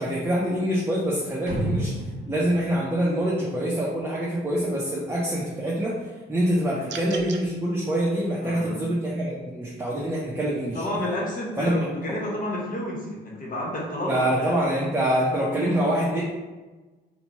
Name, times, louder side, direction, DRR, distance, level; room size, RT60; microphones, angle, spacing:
voice 1, 0.0-1.9 2.3-6.0 6.3-10.8 11.6-11.9 14.1-16.2, right 1 dB, 10° right, -5 dB, 0.6 m, -25 dB
sound 1, 1.5-4.0, right 1 dB, 40° right, 1.4 m, -32 dB
voice 2, 6.7-7.2 8.4-8.8 10.7-14.5 15.6-15.8, left 1 dB, 40° left, -2 dB, 1.1 m, -31 dB
sound 2, 6.9-7.4, right 6 dB, 65° right, 0.4 m, -37 dB
2.8 x 2.2 x 4.1 m, 1.2 s
cardioid pair, 90°, 20 cm